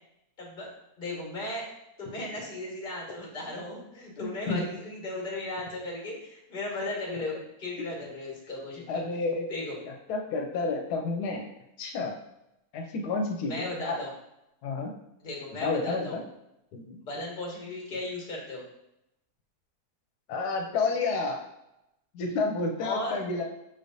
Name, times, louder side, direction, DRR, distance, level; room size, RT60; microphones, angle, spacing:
voice 1, 0.4-0.7 1.0-1.7 2.0-9.0 9.5-9.8 13.4-14.1 15.2-16.1 17.0-18.6 22.8-23.3, left 2 dB, 35° left, -3 dB, 1.4 m, -36 dB
voice 2, 4.2-4.6 7.8-7.9 8.9-9.4 10.1-11.5 11.8-12.2 12.7-14.0 14.6-14.9 15.6-16.2 16.7-17.0 20.3-21.4 22.1-23.4, left 3 dB, 85° left, 2 dB, 1.1 m, -30 dB
5.8 x 3.3 x 2.6 m, 0.86 s
omnidirectional pair, 1.6 m